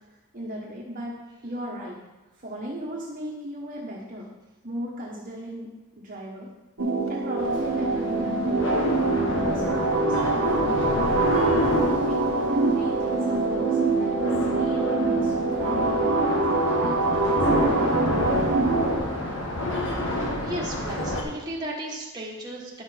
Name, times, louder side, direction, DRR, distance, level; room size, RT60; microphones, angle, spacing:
voice 1, 0.3-1.2 1.4-2.0 2.4-4.3 4.6-5.7 6.0-6.5 7.1-8.6 9.2-10.9 11.9-16.4 16.8-18.7, equal, 35° right, -4 dB, 1.2 m, -36 dB
sound 1, 6.8-19.0, right 3 dB, 65° right, 1.1 m, -24 dB
sound 2, 7.4-21.2, left 1 dB, 55° left, 1.4 m, -29 dB
voice 2, 20.0-22.8, right 1 dB, 20° right, -4 dB, 1.6 m, -35 dB
10.0 x 5.9 x 4.5 m, 1.1 s
head